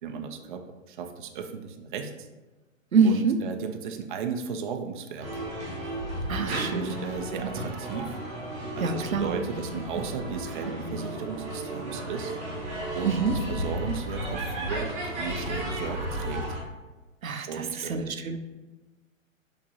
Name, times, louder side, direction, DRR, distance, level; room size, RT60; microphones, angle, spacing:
voice 1, 0.0-2.3 3.0-5.3 6.4-8.1 8.8-12.4 12.9-16.4 17.5-18.1, right 6 dB, 40° right, 5 dB, 0.4 m, -35 dB
voice 2, 2.9-3.4 6.3-6.9 7.3-7.5 8.8-9.3 13.0-13.4 17.2-18.4, right 5 dB, 90° right, 7 dB, 0.6 m, -26 dB
sound 1, 5.2-16.6, right 1 dB, 15° right, 1.0 m, -34 dB
5.9 x 2.9 x 2.7 m, 1.2 s
figure-of-eight pair, 125°, 40 cm